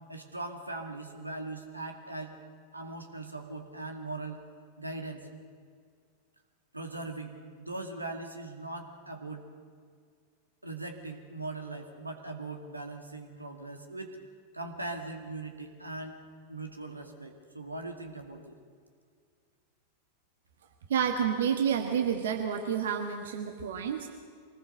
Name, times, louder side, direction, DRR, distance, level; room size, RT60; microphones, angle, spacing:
voice 1, 0.1-2.3 2.7-4.4 4.8-5.3 6.7-7.3 7.6-9.5 10.6-14.2 14.5-16.2 16.5-18.6, right 2 dB, 85° right, 4 dB, 2.1 m, -40 dB
voice 2, 20.9-24.1, right 7 dB, 60° right, 4 dB, 1.6 m, -29 dB
24.5 x 19.5 x 6.5 m, 2.1 s
figure-of-eight pair, 90°, 0 cm